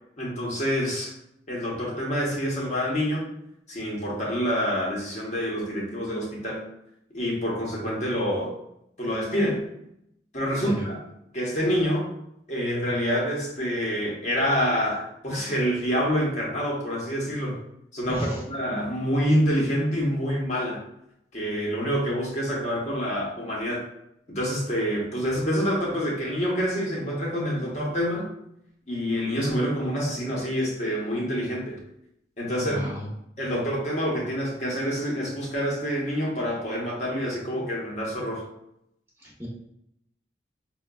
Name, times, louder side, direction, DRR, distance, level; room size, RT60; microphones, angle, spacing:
voice 1, 0.2-1.1 1.5-3.3 3.7-6.6 7.1-8.5 9.0-9.6 10.3-11.0 11.3-12.1 12.5-17.6 17.9-20.8 21.3-23.8 24.3-28.3 28.9-31.8 32.4-32.9 33.4-38.4, equal, 40° left, -4 dB, 0.8 m, -27 dB
voice 2, 18.1-18.4 32.6-33.1 39.2-39.5, equal, 15° right, -5 dB, 0.8 m, -33 dB
4.8 x 2.2 x 2.2 m, 0.78 s
head